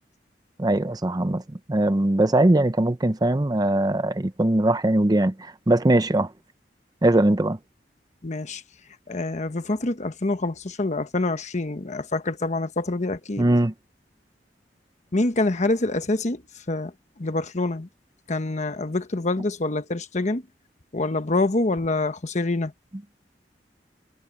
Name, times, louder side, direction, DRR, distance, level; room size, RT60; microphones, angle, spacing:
voice 1, 0.6-1.4 1.7-6.3 7.0-7.6 13.4-13.7, right 1 dB, 20° right, 0.7 m, -21 dB
voice 2, 8.2-8.6 9.1-13.5 15.1-16.4 16.7-16.9 17.2-17.9 18.3-20.4 20.9-22.7, left 2 dB, 40° left, 1.1 m, -26 dB
head